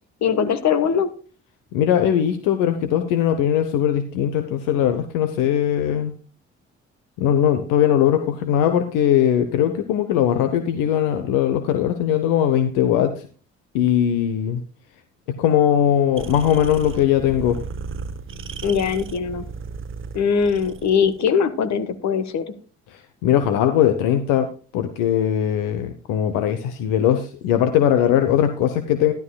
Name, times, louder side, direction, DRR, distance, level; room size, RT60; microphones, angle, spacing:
voice 1, 0.2-1.1 18.6-19.4 20.1-22.5, left 6 dB, 55° left, 11 dB, 1.3 m, -21 dB
voice 2, 1.7-6.1 7.2-13.2 13.7-14.6 15.3-17.6 23.2-29.1, left 10 dB, 75° left, 9 dB, 0.9 m, -20 dB
sound 1, 16.2-21.2, right 5 dB, 40° right, 0.9 m, -35 dB
12.5 x 12.0 x 2.3 m, 0.40 s
hypercardioid pair, 50°, 33 cm